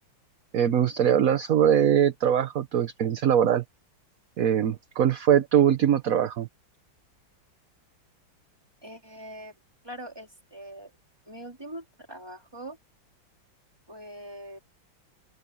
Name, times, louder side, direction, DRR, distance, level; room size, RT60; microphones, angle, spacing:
voice 1, 0.5-3.6 4.4-6.5, right 9 dB, 55° right, 1.1 m, -22 dB
voice 2, 8.8-9.5 9.8-10.9 11.3-12.8 13.9-14.6, right 1 dB, 10° right, 4.1 m, -42 dB
open air
omnidirectional pair, 2.2 m